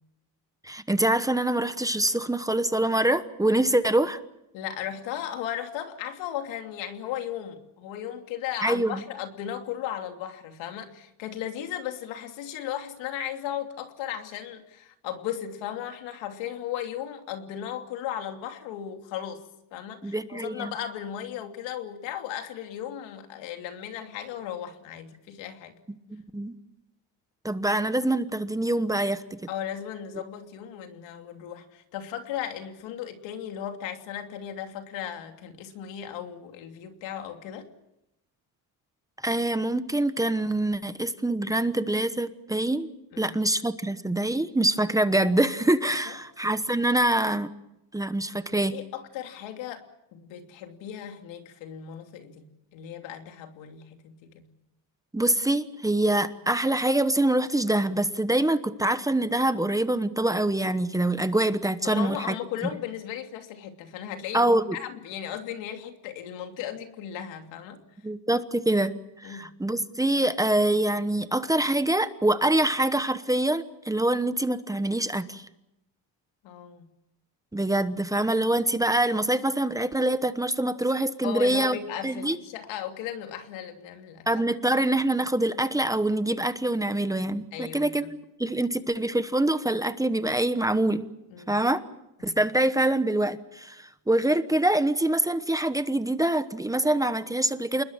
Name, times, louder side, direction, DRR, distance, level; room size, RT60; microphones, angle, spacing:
voice 1, 0.6-4.2 8.6-9.0 20.0-20.7 26.1-26.5 27.4-29.2 39.2-42.9 43.2-47.5 47.9-48.7 55.1-62.3 64.3-64.8 68.0-75.5 77.5-81.8 82.0-82.4 84.3-88.0 88.4-91.1 91.5-91.8 92.2-97.8, right 1 dB, 10° right, 11 dB, 1.0 m, -25 dB
voice 2, 4.5-19.4 19.7-25.7 29.5-37.7 43.1-43.4 46.1-46.2 48.5-54.5 61.8-67.8 69.2-69.5 76.4-76.9 81.2-84.3 87.5-88.1 91.3-91.6 92.2-92.5, left 10 dB, 85° left, 6 dB, 3.0 m, -36 dB
28.0 x 21.0 x 7.3 m, 0.87 s
cardioid pair, 135°, 44 cm